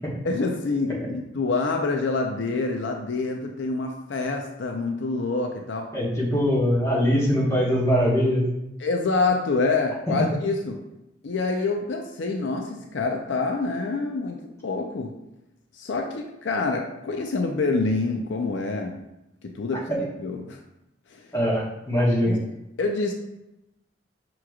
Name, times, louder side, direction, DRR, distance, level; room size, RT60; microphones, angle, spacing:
voice 1, 0.2-5.9 8.8-10.8 11.2-14.4 14.6-15.1 15.7-19.0 19.4-20.6 21.1-21.2 22.2-22.4 22.8-23.1, left 3 dB, 75° left, 3 dB, 0.5 m, -26 dB
voice 2, 5.9-8.4 19.9-20.0 21.3-22.4, equal, 15° left, -6 dB, 1.2 m, -22 dB
6.0 x 3.1 x 2.4 m, 0.90 s
head